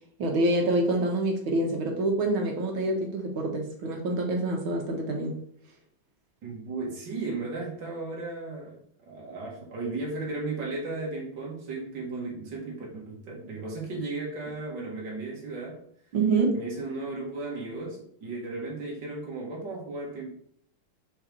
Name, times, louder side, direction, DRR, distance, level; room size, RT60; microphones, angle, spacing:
voice 1, 0.2-5.3 16.1-16.6, right 2 dB, 85° right, 2 dB, 2.4 m, -26 dB
voice 2, 6.4-15.8 16.5-20.3, right 3 dB, 60° right, -3 dB, 2.7 m, -35 dB
5.7 x 5.5 x 5.4 m, 0.65 s
omnidirectional pair, 2.2 m